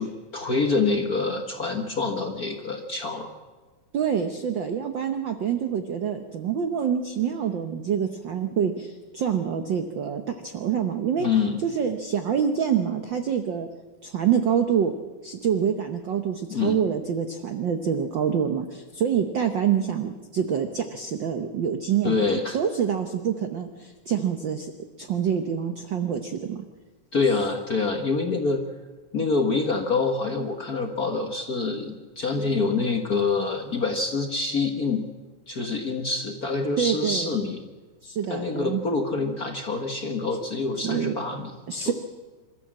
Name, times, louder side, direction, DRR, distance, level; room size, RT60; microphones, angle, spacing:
voice 1, 0.0-3.3 11.2-11.6 16.5-16.8 22.0-22.6 27.1-28.6 29.1-35.1 35.5-37.6 38.3-41.5 41.8-41.9, left 4 dB, 45° left, 3 dB, 1.2 m, -26 dB
voice 2, 3.9-11.3 11.6-13.7 14.0-14.9 15.2-24.7 25.0-26.6 36.8-37.3 38.0-38.8 40.8-41.2 41.7-41.9, right 8 dB, 80° right, 7 dB, 1.0 m, -26 dB
27.0 x 13.5 x 7.5 m, 1.3 s
omnidirectional pair, 3.5 m